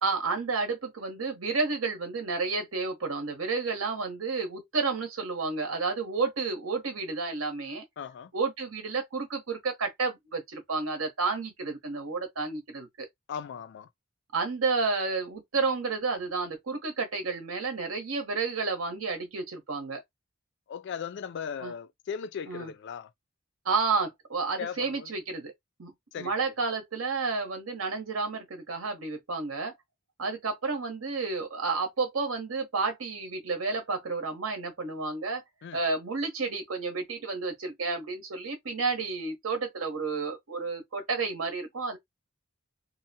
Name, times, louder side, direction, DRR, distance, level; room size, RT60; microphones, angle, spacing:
voice 1, 0.0-7.8 8.3-13.1 14.3-20.0 21.6-21.7 22.5-22.7 23.6-25.5 25.8-25.9 26.2-29.7 30.2-35.4 35.7-42.0, right 4 dB, 90° right, 0.9 m, -31 dB
voice 2, 8.0-8.3 13.3-13.9 20.7-23.1 24.6-25.1 26.1-26.3 35.6-35.8, left 7 dB, 60° left, 0.3 m, -37 dB
2.6 x 2.0 x 2.7 m
head